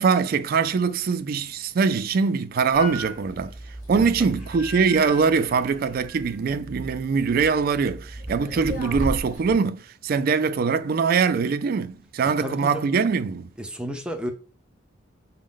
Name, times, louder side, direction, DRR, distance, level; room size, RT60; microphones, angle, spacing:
voice 1, 0.0-3.5 3.9-13.5, right 5 dB, 50° right, 0.3 m, -23 dB
sound 1, 2.7-9.5, equal, 45° left, 2.1 m, -36 dB
voice 2, 3.9-4.3 12.4-12.9 13.6-14.3, equal, 5° right, 0.5 m, -32 dB
6.1 x 2.1 x 3.7 m
head